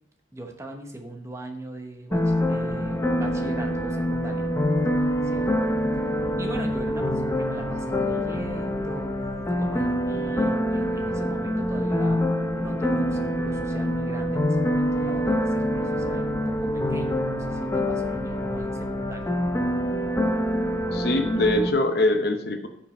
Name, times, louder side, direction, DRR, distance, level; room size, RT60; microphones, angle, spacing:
voice 1, 0.3-4.5 5.3-5.7 6.4-9.1 9.6-12.2 12.5-19.3, right 2 dB, 15° right, 4 dB, 1.0 m, -39 dB
sound 1, 2.1-21.7, equal, 15° left, 0.8 m, -25 dB
voice 2, 20.9-22.7, left 2 dB, 55° left, 7 dB, 0.9 m, -23 dB
8.9 x 5.1 x 5.0 m, 0.77 s
head